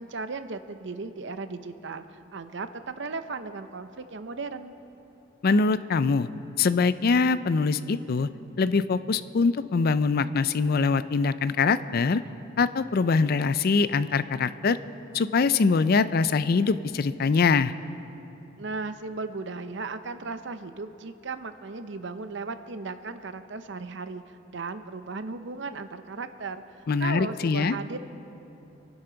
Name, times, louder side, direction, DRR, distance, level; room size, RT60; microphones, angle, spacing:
voice 1, 0.0-4.7 18.6-26.6 27.0-28.0, right 3 dB, 65° right, 10 dB, 0.7 m, -36 dB
voice 2, 5.4-6.3 6.6-8.3 8.6-12.2 12.6-14.8 15.1-17.7 26.9-27.7, left 4 dB, 50° left, 14 dB, 0.4 m, -23 dB
27.0 x 11.5 x 3.9 m, 2.9 s
head